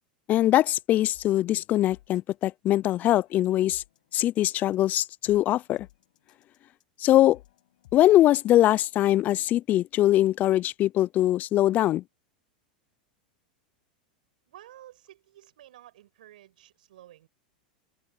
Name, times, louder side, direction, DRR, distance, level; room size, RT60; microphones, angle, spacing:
voice 1, 0.3-3.8 4.1-5.9 7.0-7.4 7.9-12.0, left 14 dB, 40° left, 0.4 m, -22 dB
sound 1, 1.1-8.6, left 15 dB, 75° left, 6.8 m, -58 dB
voice 2, 14.5-17.3, right 13 dB, 75° right, 5.6 m, -52 dB
hypercardioid pair, 105°, 5 cm